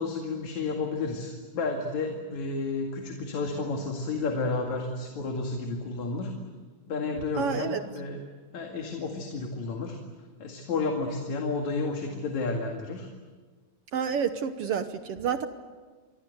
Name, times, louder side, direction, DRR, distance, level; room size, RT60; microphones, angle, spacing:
voice 1, 0.0-6.3 6.9-8.2 8.5-10.0 10.4-13.1, left 3 dB, 60° left, 2 dB, 3.3 m, -31 dB
voice 2, 7.4-7.8 13.9-15.5, right 7 dB, 70° right, 9 dB, 1.4 m, -29 dB
28.5 x 23.0 x 8.0 m, 1.4 s
omnidirectional pair, 3.9 m